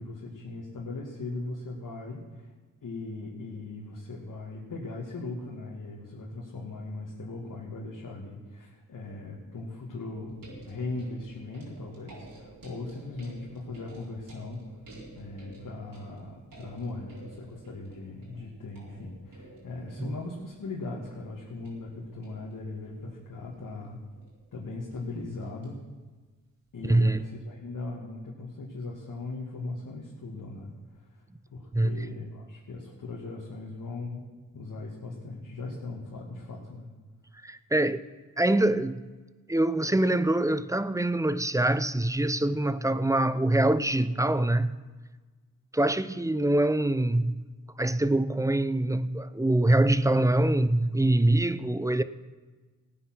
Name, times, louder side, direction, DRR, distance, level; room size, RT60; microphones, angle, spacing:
voice 1, 0.0-2.5 2.8-10.4 10.6-14.6 15.2-24.0 24.5-25.8 26.7-30.7 30.9-31.1 31.5-34.3 34.5-36.9, left 3 dB, 65° left, 2.4 m, -39 dB
sound 1, 10.3-25.7 26.7-26.8, right 1 dB, 70° right, 4.5 m, -52 dB
voice 2, 26.8-27.2 31.7-32.1 37.4-38.0 38.4-39.0 39.5-44.8 45.7-47.4 47.8-52.0, right 1 dB, 10° right, 0.7 m, -24 dB
16.0 x 9.0 x 6.2 m
supercardioid pair, 45°, 35 cm